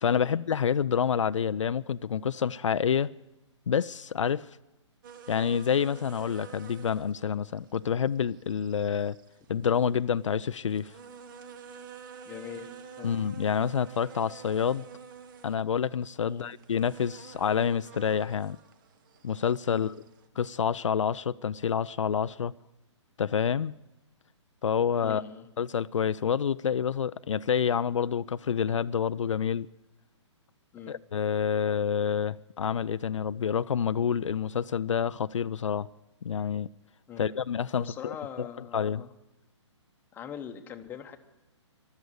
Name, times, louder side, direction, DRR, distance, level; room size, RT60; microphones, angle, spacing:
voice 1, 0.0-3.1 3.7-4.4 5.3-9.2 9.5-10.9 13.0-14.9 15.4-18.6 19.2-20.0 20.4-22.5 23.2-23.7 24.6-25.2 25.6-29.7 30.9-35.9 36.2-36.7 37.2-38.5 38.7-39.0, left 7 dB, 75° left, 0.4 m, -28 dB
sound 1, 5.0-20.3, right 6 dB, 45° right, 1.1 m, -49 dB
voice 2, 12.2-12.7 13.0-13.1 16.2-16.5 19.7-19.9 25.0-25.5 30.7-31.0 37.1-37.4 37.7-39.1 40.1-41.2, left 8 dB, 15° left, 1.0 m, -42 dB
14.0 x 12.5 x 8.1 m
hypercardioid pair, 135°, 16 cm